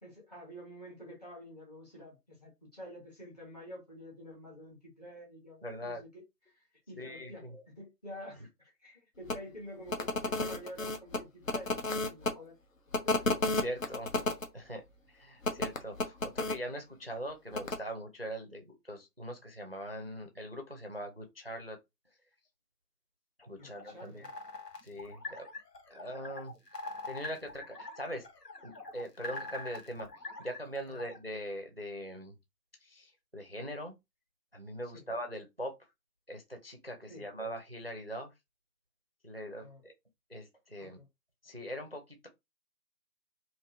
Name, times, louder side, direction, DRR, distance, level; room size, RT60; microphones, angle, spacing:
voice 1, 0.0-7.4 7.7-12.5 13.0-13.2 23.6-24.3 30.9-31.0 34.8-35.0 37.1-37.3 39.6-39.8 40.8-41.1, equal, 25° left, 1.3 m, -49 dB
voice 2, 5.6-6.0 7.0-7.6 13.5-14.1 14.5-14.8 15.1-21.8 23.4-24.3 24.8-25.5 25.9-26.5 27.0-28.3 28.6-30.1 30.4-32.3 32.8-34.0 34.5-35.8 36.3-38.3 39.2-39.9 40.3-41.0 41.4-42.3, equal, 40° right, 0.5 m, -41 dB
sound 1, 9.3-9.4 9.9-12.3 12.9-14.5 15.4-16.6 17.5-17.8, left 2 dB, 55° left, 0.7 m, -32 dB
sound 2, 23.6-31.2, left 2 dB, 80° left, 1.1 m, -44 dB
3.4 x 2.5 x 2.5 m
figure-of-eight pair, 170°, 47 cm